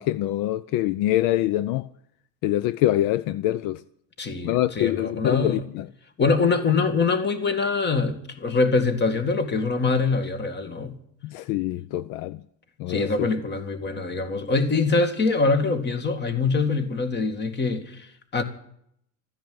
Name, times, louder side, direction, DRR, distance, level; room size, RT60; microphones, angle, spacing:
voice 1, 0.0-1.9 2.4-3.8 4.4-5.9 11.2-12.4 12.8-13.1, left 14 dB, 70° left, 0.7 m, -25 dB
voice 2, 4.2-5.6 6.2-11.0 12.9-18.4, left 4 dB, 30° left, 2.3 m, -24 dB
14.0 x 10.0 x 9.5 m
cardioid pair, 135°, 34 cm